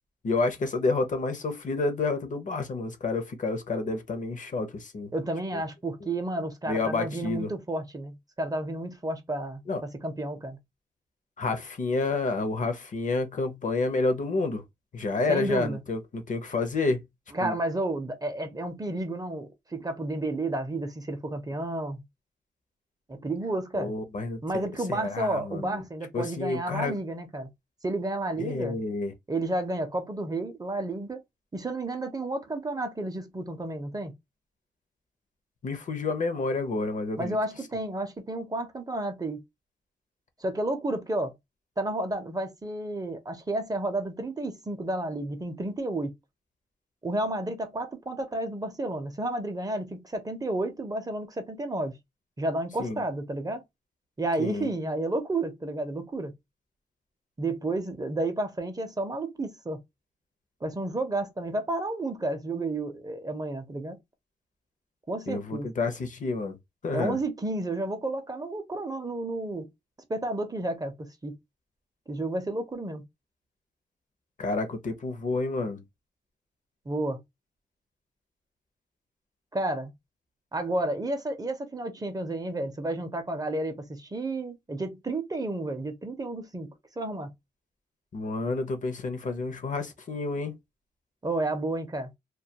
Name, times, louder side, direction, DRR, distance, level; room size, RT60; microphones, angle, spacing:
voice 1, 0.2-5.1 5.5-5.6 6.7-7.5 9.7-9.8 11.4-14.6 14.9-17.0 17.4-17.6 23.7-25.8 26.1-26.9 28.4-29.1 35.6-37.4 52.8-53.0 54.4-54.7 65.3-66.5 66.8-67.2 74.4-75.8 88.1-90.6, left 3 dB, 45° left, 0.6 m, -29 dB
voice 2, 5.1-10.6 15.3-15.8 17.3-22.0 23.1-23.9 24.4-27.5 27.8-28.8 29.3-31.2 31.5-34.1 37.2-39.4 40.4-41.3 41.8-46.1 47.0-51.9 52.4-53.6 54.2-56.3 57.4-59.8 60.6-64.0 65.1-65.7 66.9-69.7 70.1-71.3 72.1-73.0 76.9-77.2 79.5-79.9 80.5-86.7 87.0-87.3 91.2-92.1, right 2 dB, 20° right, 0.5 m, -31 dB
2.2 x 2.2 x 2.7 m
wide cardioid pair, 115°, 18 cm